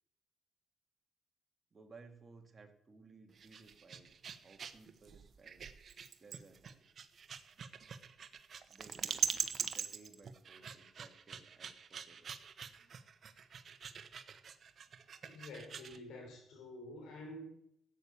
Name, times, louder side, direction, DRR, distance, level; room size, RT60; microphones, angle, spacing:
voice 1, 1.7-5.7 6.2-6.9 8.7-9.2 9.6-12.3, right 3 dB, 35° right, 4 dB, 2.3 m, -60 dB
sound 1, 3.3-16.0, right 7 dB, 50° right, 1.2 m, -43 dB
voice 2, 15.2-17.4, left 1 dB, 80° left, 2 dB, 5.6 m, -49 dB
14.5 x 8.7 x 6.9 m, 0.73 s
cardioid pair, 90°, 0 cm